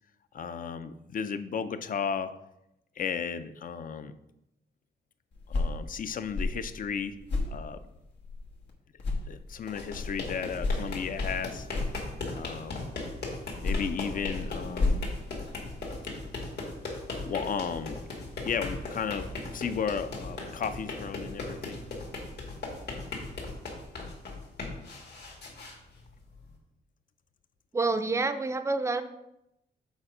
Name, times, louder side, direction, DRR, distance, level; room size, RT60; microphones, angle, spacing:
voice 1, 0.3-2.3 3.0-4.1 5.5-7.2 7.5-7.8 9.3-11.7 12.3-12.9 13.6-15.1 17.3-18.0 18.4-21.8, left 6 dB, 50° left, 11 dB, 0.5 m, -34 dB
sound 1, 5.3-8.7 9.0-12.5 13.4-16.0, left 3 dB, 90° left, 1.3 m, -33 dB
sound 2, 9.5-26.5, left 2 dB, 70° left, 1.9 m, -38 dB
voice 2, 27.7-29.0, right 3 dB, 15° right, 10 dB, 0.4 m, -28 dB
7.3 x 4.4 x 4.9 m, 0.86 s
wide cardioid pair, 145°, 18 cm